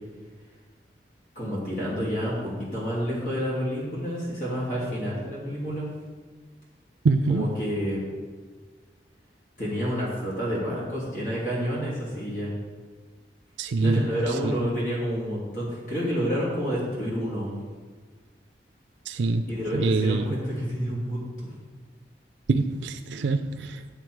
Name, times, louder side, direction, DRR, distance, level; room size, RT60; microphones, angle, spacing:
voice 1, 1.3-5.9 7.3-8.0 9.6-12.5 13.8-17.5 19.5-21.5, equal, 45° left, -6 dB, 2.7 m, -29 dB
voice 2, 7.0-7.5 13.6-14.5 19.1-19.4 19.7-20.4 22.5-23.9, right 3 dB, 85° right, 8 dB, 0.4 m, -25 dB
9.0 x 6.7 x 4.6 m, 1.4 s
head